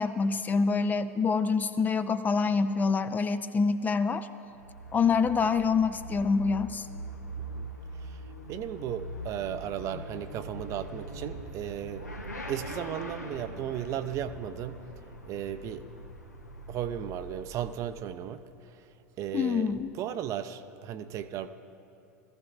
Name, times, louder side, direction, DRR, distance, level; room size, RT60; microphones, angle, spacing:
voice 1, 0.0-4.3 4.9-6.9 19.3-19.9, left 5 dB, 20° left, 12 dB, 0.4 m, -26 dB
Motorcycle / Accelerating revving vroom, 4.4-18.3, right 1 dB, 85° left, 1.0 m, -42 dB
voice 2, 8.0-12.1 12.5-14.8 15.3-15.9 16.7-18.9 19.2-21.5, right 10 dB, 40° right, 10 dB, 0.6 m, -36 dB
21.0 x 14.5 x 2.5 m, 2.7 s
figure-of-eight pair, 85°, 9 cm